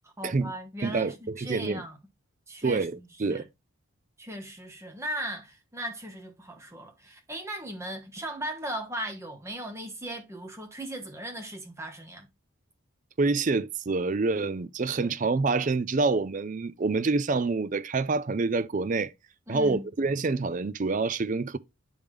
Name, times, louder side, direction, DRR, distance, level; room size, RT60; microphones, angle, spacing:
voice 1, 0.2-2.0 2.5-2.9 3.3-3.5 4.2-12.3 15.0-15.1 19.5-19.9, right 1 dB, 15° right, 1.2 m, -37 dB
voice 2, 0.8-1.8 2.6-3.4 13.2-19.1 19.5-21.6, right 3 dB, 35° right, 0.4 m, -27 dB
10.5 x 3.5 x 3.2 m
head